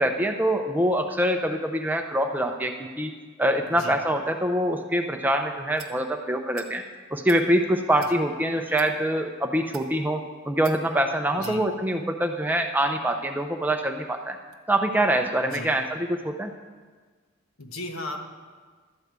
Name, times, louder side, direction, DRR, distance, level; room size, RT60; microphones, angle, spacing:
voice 1, 0.0-3.1 3.4-6.8 7.1-14.4 14.7-16.5, right 1 dB, 10° right, 4 dB, 0.5 m, -25 dB
voice 2, 3.7-4.0 11.3-11.6 15.5-15.7 17.6-18.3, left 1 dB, 70° left, 4 dB, 1.1 m, -36 dB
sound 1, 5.8-6.0 6.5-6.7 7.1-7.4 8.0-8.2 8.7-8.9 9.6-9.9 10.6-10.8 11.4-11.6, right 10 dB, 70° right, 0.9 m, -44 dB
12.0 x 4.8 x 8.0 m, 1.5 s
head